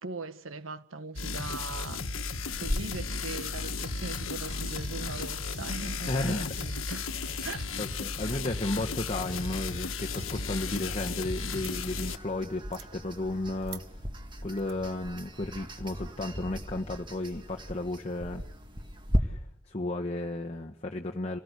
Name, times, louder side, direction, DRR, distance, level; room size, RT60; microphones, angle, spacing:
voice 1, 0.0-2.1 2.6-7.1 7.4-7.7, right 3 dB, 85° right, 1.4 m, -40 dB
sound 1, 1.2-12.2, left 4 dB, 85° left, 1.4 m, -35 dB
sound 2, 2.5-19.2, equal, 25° right, 1.9 m, -39 dB
voice 2, 6.1-6.5 7.8-13.8 14.4-18.4 19.2-19.4 19.7-21.4, left 2 dB, 30° left, 1.2 m, -33 dB
sound 3, 9.4-9.8 10.1-10.4 10.6-12.2 12.6-12.9 13.6-13.8 14.6-14.7, right 12 dB, 55° right, 1.2 m, -47 dB
28.0 x 18.5 x 8.2 m
head